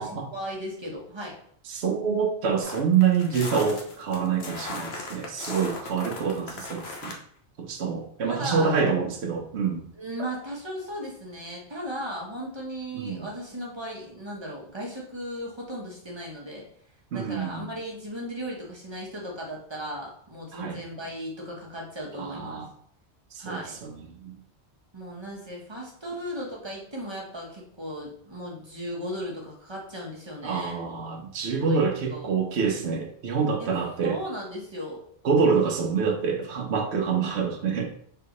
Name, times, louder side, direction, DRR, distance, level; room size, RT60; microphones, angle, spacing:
voice 1, 0.0-1.4 8.2-8.7 10.0-16.7 17.1-22.6 23.4-23.7 24.9-30.8 31.7-31.8 32.1-32.3 33.6-33.7 34.0-35.0, equal, 25° right, -3 dB, 1.0 m, -36 dB
voice 2, 1.7-7.1 7.6-9.9 12.9-13.3 17.1-17.7 20.5-20.8 22.2-22.7 23.3-24.3 30.4-34.2 35.2-37.9, right 6 dB, 75° right, 2 dB, 1.0 m, -26 dB
sound 1, 2.6-7.2, left 3 dB, 70° left, 1.0 m, -37 dB
3.8 x 3.3 x 3.0 m, 0.63 s
omnidirectional pair, 1.1 m